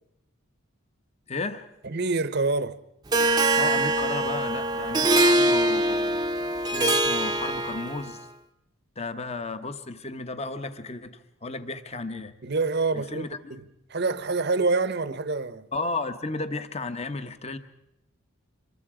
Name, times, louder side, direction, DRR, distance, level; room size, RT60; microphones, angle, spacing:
voice 1, 1.3-1.7 3.6-6.2 6.7-8.3 9.0-12.3 12.9-13.5 15.7-17.6, left 3 dB, 30° left, 1.0 m, -33 dB
voice 2, 1.8-2.8 12.4-13.6 13.9-15.7, right 3 dB, 45° right, 0.9 m, -26 dB
Harp, 3.1-8.1, right 1 dB, 20° right, 0.7 m, -23 dB
26.0 x 22.0 x 4.9 m
head